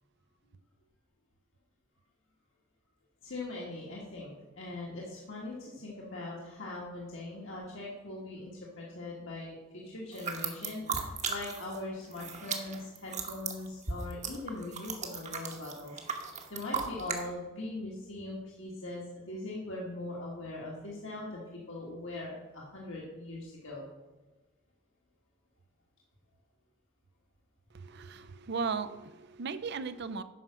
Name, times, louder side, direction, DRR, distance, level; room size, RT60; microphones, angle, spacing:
voice 1, 3.2-16.0 16.3-23.8, left 2 dB, 60° left, -4 dB, 1.5 m, -41 dB
sound 1, 10.1-11.8 12.0-17.2, right 6 dB, 35° right, 1.1 m, -36 dB
voice 2, 27.7-30.2, right 5 dB, 50° right, 13 dB, 0.5 m, -36 dB
9.1 x 5.5 x 6.1 m, 1.2 s
head